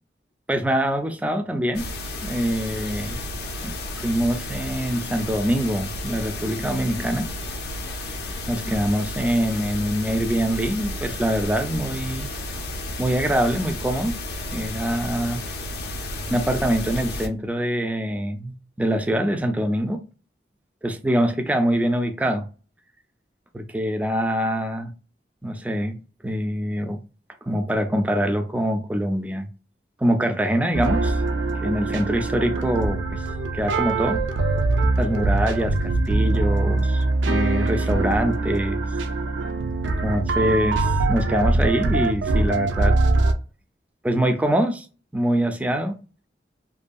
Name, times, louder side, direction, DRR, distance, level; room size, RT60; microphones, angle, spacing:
voice 1, 0.5-1.9 2.2-3.2 3.6-7.3 8.5-12.3 13.0-14.2 14.5-15.4 16.3-20.0 20.8-22.5 23.5-24.9 25.4-26.0 26.2-27.0 27.4-29.5 30.0-31.2 31.6-33.2 33.5-34.3 35.0-38.8 40.0-43.0 44.0-44.9 45.1-46.0, equal, 10° right, 0.3 m, -24 dB
sound 1, 1.7-17.3, left 1 dB, 60° left, 0.5 m, -32 dB
sound 2, 30.7-43.3, right 2 dB, 90° right, 0.4 m, -23 dB
2.6 x 2.6 x 2.2 m
head